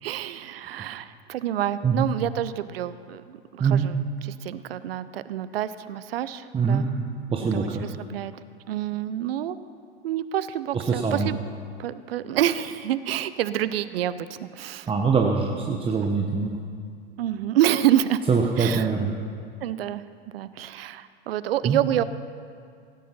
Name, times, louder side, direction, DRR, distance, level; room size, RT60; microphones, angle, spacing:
voice 1, 0.0-6.9 7.5-8.3 8.7-9.6 10.0-11.4 11.8-14.9 17.2-18.2 18.6-18.9 19.6-20.0 20.3-22.0, right 12 dB, 65° right, 14 dB, 0.7 m, -28 dB
voice 2, 6.5-6.9 7.3-7.8 10.7-11.3 14.9-16.6 18.3-19.1 21.6-21.8, right 5 dB, 15° right, 1 dB, 1.1 m, -23 dB
17.0 x 9.2 x 5.8 m, 2.2 s
figure-of-eight pair, 95°, 32 cm